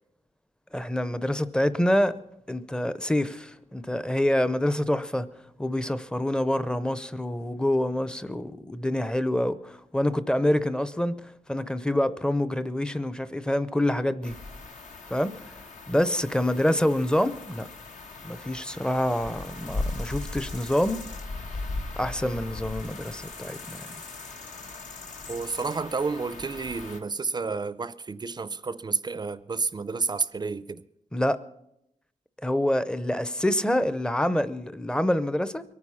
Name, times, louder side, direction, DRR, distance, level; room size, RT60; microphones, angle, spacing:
voice 1, 0.7-2.2 2.5-5.3 5.6-14.3 15.1-15.3 15.9-17.7 18.2-21.0 22.0-23.9 31.1-31.4 32.4-35.6, left 1 dB, 5° left, 0.6 m, -26 dB
sound 1, 14.2-27.0, left 2 dB, 75° left, 1.6 m, -38 dB
voice 2, 25.3-30.8, right 4 dB, 35° right, 0.5 m, -30 dB
22.5 x 9.6 x 5.6 m
wide cardioid pair, 140°, 13 cm